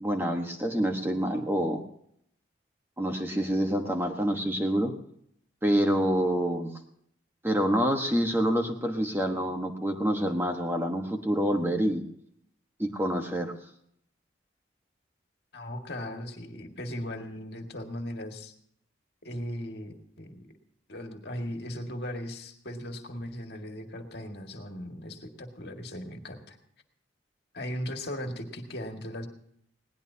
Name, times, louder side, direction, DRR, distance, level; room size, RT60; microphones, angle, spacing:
voice 1, 0.0-1.8 3.0-4.9 5.6-6.7 7.4-12.1 12.8-13.5, equal, 10° right, 3 dB, 1.2 m, -27 dB
voice 2, 15.5-18.5 19.2-20.5 20.9-26.6 27.5-29.3, equal, 55° left, 3 dB, 1.9 m, -38 dB
21.0 x 18.0 x 2.8 m, 0.70 s
head